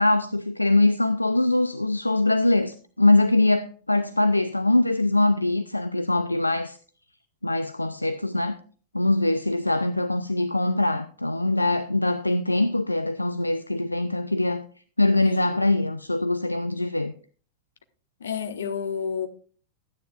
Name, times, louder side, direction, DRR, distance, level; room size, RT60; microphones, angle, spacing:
voice 1, 0.0-6.8 7.4-8.6 8.9-14.6 15.0-17.1, left 2 dB, 85° left, 0.3 m, -23 dB
voice 2, 15.2-15.6 18.2-19.3, left 7 dB, 65° left, 0.8 m, -30 dB
13.0 x 9.3 x 2.4 m
figure-of-eight pair, 90°, 0 cm